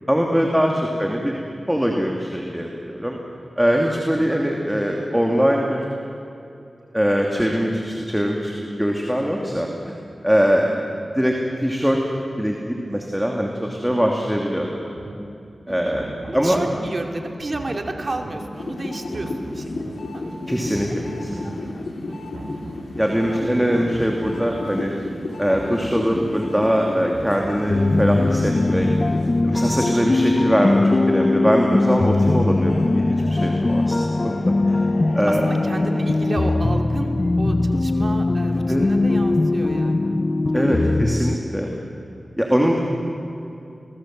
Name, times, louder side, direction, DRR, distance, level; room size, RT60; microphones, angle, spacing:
voice 1, 0.1-1.3 1.7-3.2 3.6-5.8 6.9-10.0 10.2-10.8 11.2-12.0 12.4-14.7 15.7-16.1 16.3-16.6 20.5-21.4 23.0-24.9 25.4-28.9 29.4-34.3 34.7-34.8 35.1-35.5 38.7-38.9 40.5-41.7 42.4-42.8, equal, 5° right, 0 dB, 2.9 m, -22 dB
voice 2, 0.8-1.3 4.2-4.5 10.7-11.2 15.7-19.7 20.0-20.3 22.1-22.9 23.3-23.5 29.5-29.8 33.5-34.7 34.9-40.2 40.5-41.0 41.7-41.8, right 2 dB, 50° right, 3 dB, 2.8 m, -33 dB
sound 1, 14.9-15.1 15.8-16.7 17.4-18.3 19.0-19.9 20.6-21.5 22.2-23.1 23.8-24.7 25.4-26.3 27.0-27.9 28.6-29.3, right 2 dB, 75° right, 4.0 m, -39 dB
sound 2, 18.5-29.8 30.2-36.6, left 2 dB, 75° left, 3.2 m, -34 dB
sound 3, 27.7-41.4, left 2 dB, 35° left, 0.8 m, -20 dB
27.0 x 19.5 x 7.9 m, 2.7 s
cardioid pair, 55°, 0 cm